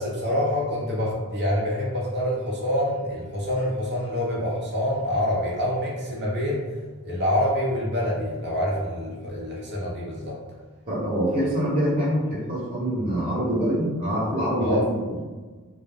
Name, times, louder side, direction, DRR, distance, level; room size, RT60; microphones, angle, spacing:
voice 1, 0.0-6.6 7.0-10.4 14.6-14.9, left 1 dB, 50° right, -5 dB, 0.8 m, -26 dB
voice 2, 10.8-15.1, equal, 25° right, -9 dB, 1.0 m, -25 dB
2.1 x 2.1 x 3.4 m, 1.3 s
head